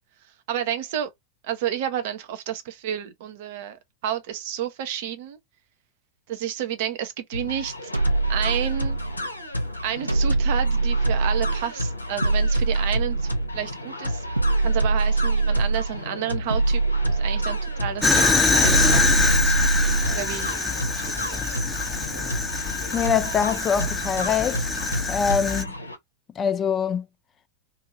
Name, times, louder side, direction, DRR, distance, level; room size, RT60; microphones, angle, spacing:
voice 1, 0.5-1.1 1.4-5.4 6.3-7.9 8.3-9.0 9.8-14.2 14.6-19.5 20.1-21.7, right 10 dB, 50° right, 0.8 m, -31 dB
sound 1, 7.3-26.0, left 1 dB, 85° left, 0.7 m, -32 dB
sound 2, 7.9-9.3 10.1-11.7 12.2-13.6 14.4-16.0 16.5-17.9 18.6-20.3, right 3 dB, 85° right, 1.0 m, -23 dB
Fire, 18.0-25.6, left 3 dB, 10° left, 0.8 m, -24 dB
voice 2, 22.9-24.6 25.1-25.7 26.4-27.1, left 7 dB, 25° left, 0.4 m, -24 dB
2.8 x 2.7 x 2.6 m
figure-of-eight pair, 90°, 0 cm